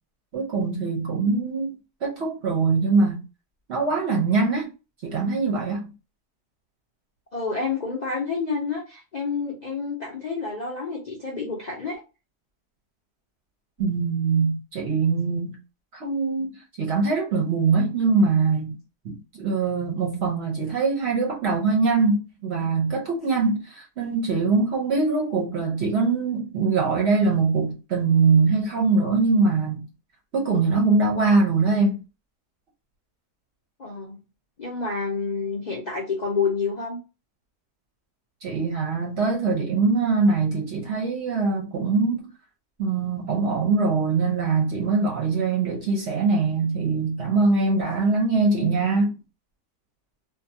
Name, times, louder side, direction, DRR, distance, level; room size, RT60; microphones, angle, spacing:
voice 1, 0.3-1.7 2.0-3.2 3.7-4.7 5.0-5.9 13.8-15.6 15.9-18.8 19.0-29.8 30.3-32.0 38.4-42.3 42.8-49.2, right 4 dB, 55° right, 0.8 m, -22 dB
voice 2, 7.3-12.0 33.8-34.2 34.6-37.0, left 4 dB, 65° left, 0.4 m, -29 dB
2.6 x 2.3 x 2.6 m
omnidirectional pair, 1.6 m